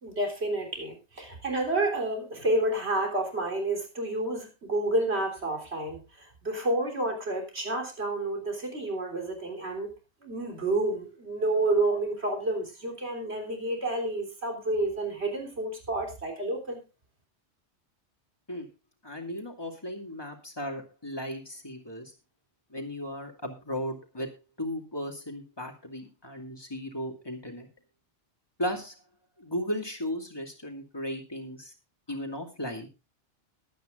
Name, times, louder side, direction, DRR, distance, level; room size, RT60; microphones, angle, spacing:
voice 1, 0.0-9.9 10.2-16.8, right 2 dB, 65° right, 2 dB, 3.9 m, -30 dB
voice 2, 19.0-22.1 22.7-24.3 24.6-27.7 28.6-28.9 29.4-31.7 32.1-32.9, equal, 20° left, 2 dB, 2.5 m, -36 dB
21.5 x 9.2 x 2.5 m, 0.28 s
omnidirectional pair, 1.2 m